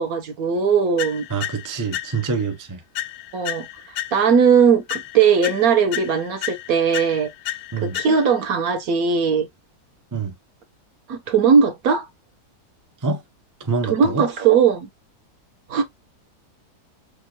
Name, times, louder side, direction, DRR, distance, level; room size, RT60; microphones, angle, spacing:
voice 1, 0.0-1.2 3.3-7.3 7.8-9.5 11.1-12.1 13.9-14.9 15.7-15.8, right 6 dB, 65° right, 1.3 m, -19 dB
sound 1, 1.0-2.5 2.9-4.5 4.9-8.5, left 13 dB, 85° left, 1.2 m, -33 dB
voice 2, 1.3-2.8 7.7-8.0 10.1-10.3 13.0-13.2 13.6-14.3, right 4 dB, 30° right, 0.3 m, -26 dB
6.4 x 2.5 x 2.9 m
omnidirectional pair, 1.7 m